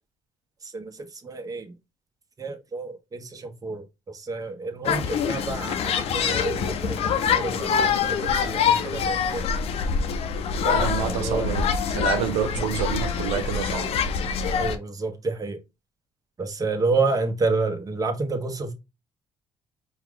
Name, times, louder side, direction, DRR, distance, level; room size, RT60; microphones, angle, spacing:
voice 1, 0.6-1.7 2.4-9.5 10.9-11.5 12.6-12.7 14.5-15.6 16.4-18.7, right 3 dB, 35° right, 1.2 m, -29 dB
sound 1, 4.8-14.8, left 6 dB, 70° left, 0.7 m, -25 dB
voice 2, 10.6-13.9, right 9 dB, 90° right, 0.5 m, -28 dB
4.7 x 2.4 x 3.7 m
supercardioid pair, 70°, 11 cm